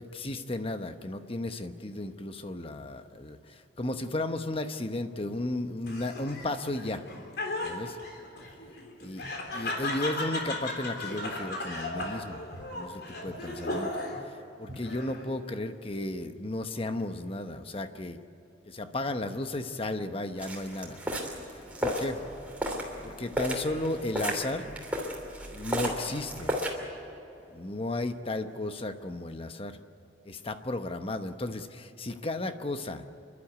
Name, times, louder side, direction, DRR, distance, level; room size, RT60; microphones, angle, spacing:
voice 1, 0.0-7.0 7.6-8.0 9.0-9.2 9.5-12.4 12.7-13.9 14.3-18.2 18.7-21.0 21.5-22.2 23.0-24.9 25.5-26.6 27.5-29.8 30.2-33.0, left 2 dB, 30° left, 8 dB, 1.0 m, -34 dB
Laughter, 5.8-14.3 14.7-15.4, left 2 dB, 60° left, 3.6 m, -36 dB
sound 1, 20.4-26.7, equal, 10° right, 2.9 m, -34 dB
29.0 x 12.0 x 9.5 m, 2.9 s
head